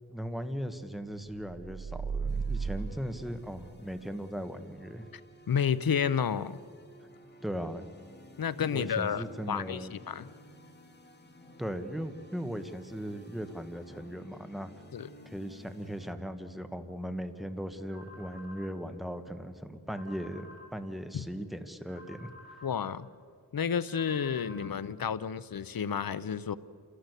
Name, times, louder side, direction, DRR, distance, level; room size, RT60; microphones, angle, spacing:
voice 1, 0.1-5.0 7.4-7.8 8.7-10.0 11.6-14.7 15.2-22.3, equal, ahead, 8 dB, 1.5 m, -38 dB
sound 1, 1.5-4.1, right 5 dB, 50° right, 0.7 m, -35 dB
sound 2, 2.3-16.1, left 1 dB, 30° left, 2.5 m, -54 dB
voice 2, 5.5-6.6 8.4-10.3 14.9-15.1 21.1-21.2 22.6-23.1 23.5-26.6, left 7 dB, 70° left, 16 dB, 0.7 m, -31 dB
sound 3, 17.9-18.7 19.9-20.7 21.9-22.7 23.9-24.7, left 2 dB, 35° right, 7.5 m, -51 dB
28.5 x 16.5 x 8.2 m, 2.2 s
wide cardioid pair, 65°, 36 cm